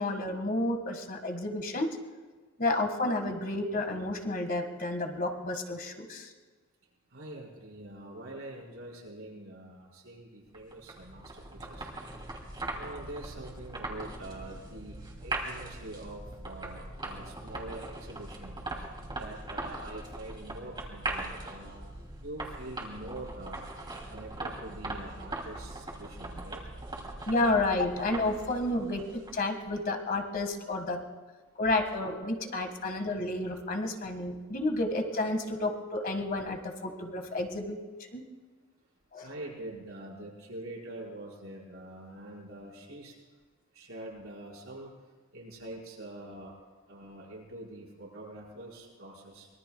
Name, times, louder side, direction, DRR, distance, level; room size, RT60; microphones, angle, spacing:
voice 1, 0.0-2.0 2.6-6.3 27.3-31.0 31.6-38.2 39.1-39.3, left 2 dB, 45° left, 4 dB, 1.8 m, -31 dB
voice 2, 7.1-11.9 12.7-18.6 19.1-22.0 22.2-23.6 24.1-26.6 39.2-43.1 43.7-44.9 45.3-46.6 46.9-49.5, right 1 dB, 70° right, -2 dB, 5.5 m, -44 dB
sound 1, 10.5-29.6, right 2 dB, 25° right, 2.8 m, -40 dB
24.5 x 22.5 x 2.3 m, 1.3 s
head